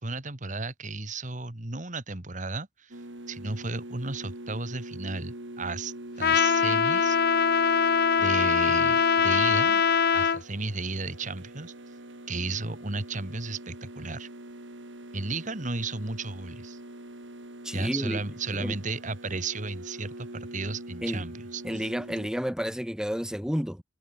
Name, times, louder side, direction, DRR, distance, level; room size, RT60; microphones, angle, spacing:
voice 1, 0.0-3.0 3.3-7.2 8.2-9.8 10.1-11.7 12.3-14.3 15.1-16.8 17.7-21.9, right 3 dB, 40° right, 2.0 m, -34 dB
sound 1, 2.9-22.3, right 1 dB, 70° right, 3.5 m, -43 dB
Trumpet, 6.2-10.4, left 6 dB, 55° left, 0.7 m, -22 dB
voice 2, 17.6-18.2 18.5-18.8 21.0-21.2 21.6-23.8, equal, 5° right, 2.0 m, -31 dB
head